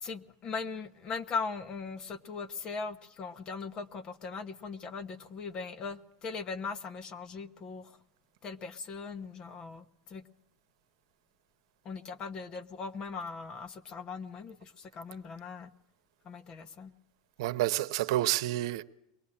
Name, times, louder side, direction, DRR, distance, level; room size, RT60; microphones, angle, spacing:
voice 1, 0.0-7.9 8.4-10.2 11.8-15.7 16.2-16.9, left 4 dB, 25° left, 1.0 m, -39 dB
voice 2, 17.4-18.8, right 15 dB, 70° right, 1.0 m, -29 dB
23.0 x 19.5 x 8.7 m
supercardioid pair, 155°, 3 cm